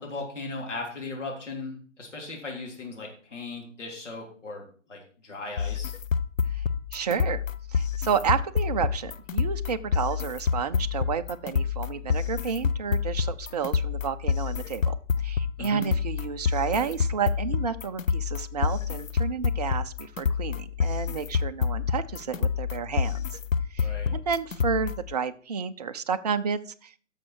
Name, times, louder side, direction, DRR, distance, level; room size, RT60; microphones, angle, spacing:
voice 1, 0.0-4.6 4.9-5.9 15.6-15.8 23.8-24.1, left 3 dB, 65° left, -1 dB, 3.5 m, -37 dB
sound 1, 5.6-25.1, left 6 dB, 85° left, 0.7 m, -28 dB
voice 2, 6.9-7.4 7.7-23.4 23.7-26.9, right 6 dB, 35° right, 9 dB, 0.4 m, -31 dB
11.5 x 6.4 x 4.6 m, 0.44 s
figure-of-eight pair, 130°, 38 cm